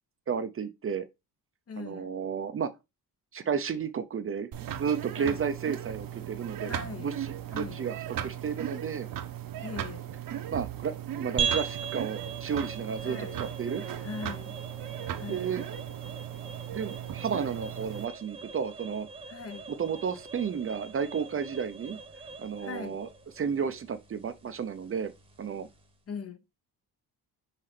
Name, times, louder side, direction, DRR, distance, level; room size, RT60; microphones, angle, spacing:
voice 1, 0.3-1.1 1.8-2.7 3.3-4.5 4.8-6.7 7.0-9.1 10.5-13.8 15.3-15.6 16.7-19.1 19.7-22.0 22.4-23.1 23.4-25.1 25.4-25.7, right 6 dB, 35° right, 0.6 m, -32 dB
voice 2, 1.7-2.1 5.2-5.4 6.6-7.2 7.5-7.9 9.6-10.1 13.0-13.4 14.0-14.6 15.2-15.6 19.3-19.7 22.6-23.0 26.1-26.4, left 5 dB, 40° left, 0.9 m, -40 dB
sound 1, 4.5-18.1, right 11 dB, 60° right, 1.0 m, -37 dB
sound 2, 11.4-26.0, right 6 dB, 15° right, 1.1 m, -40 dB
5.7 x 5.4 x 3.3 m
cardioid pair, 150°, 38 cm